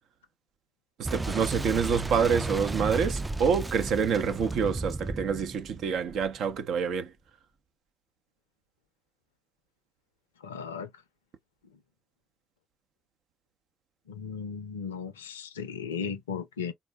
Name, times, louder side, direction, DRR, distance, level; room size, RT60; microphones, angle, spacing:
Boom, 1.0-6.6, right 2 dB, 20° right, 0.3 m, -34 dB
voice 1, 1.0-7.1, right 6 dB, 65° right, 0.6 m, -27 dB
voice 2, 10.4-10.9 14.1-16.7, left 6 dB, 90° left, 0.4 m, -36 dB
3.8 x 2.0 x 2.8 m
hypercardioid pair, 45°, 0 cm